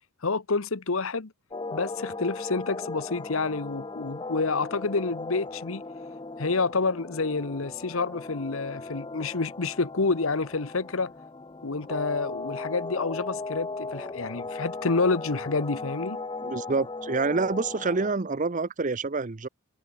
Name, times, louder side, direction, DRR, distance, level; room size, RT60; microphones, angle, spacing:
voice 1, 0.2-1.3 1.7-5.8 6.4-11.1 11.6-16.2, left 3 dB, 70° left, 1.1 m, -28 dB
sound 1, 1.5-18.1, left 3 dB, 20° left, 0.6 m, -37 dB
voice 2, 16.4-19.5, right 3 dB, 35° right, 0.7 m, -27 dB
head